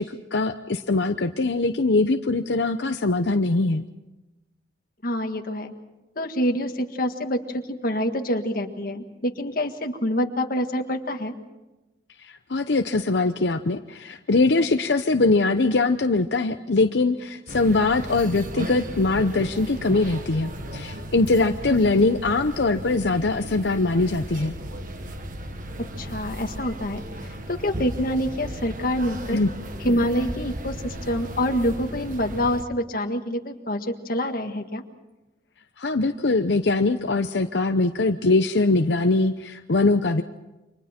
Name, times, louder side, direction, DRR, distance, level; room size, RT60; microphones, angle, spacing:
voice 1, 0.0-3.8 12.3-24.5 29.3-29.5 35.8-40.2, left 3 dB, 80° left, 7 dB, 0.8 m, -22 dB
voice 2, 5.0-5.7 6.2-11.3 21.7-21.8 26.0-27.0 27.5-29.4 29.8-34.8, equal, 55° left, 5 dB, 1.7 m, -26 dB
sound 1, 17.5-32.6, right 1 dB, 50° right, 1.6 m, -36 dB
29.5 x 25.0 x 4.4 m, 1.0 s
head